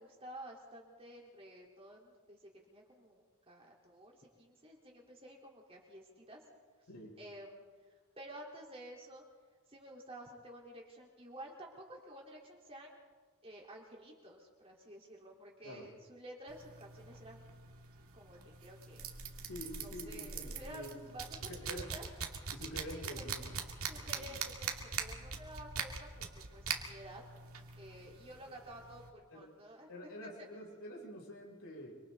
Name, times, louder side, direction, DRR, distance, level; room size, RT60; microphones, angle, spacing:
voice 1, 0.0-6.4 7.2-7.6 8.2-9.2 9.7-13.0 13.4-17.4 18.1-19.0 19.8-22.0 22.9-23.3 23.9-27.2 27.8-30.5, right 1 dB, 25° right, -2 dB, 4.1 m, -52 dB
sound 1, 16.5-29.1, right 6 dB, 75° right, 2.3 m, -43 dB
voice 2, 19.5-21.0 21.4-21.9 22.5-23.6 23.9-24.3 29.3-29.4 29.9-31.9, equal, 90° left, -2 dB, 6.7 m, -47 dB
26.5 x 25.5 x 4.1 m, 1.4 s
head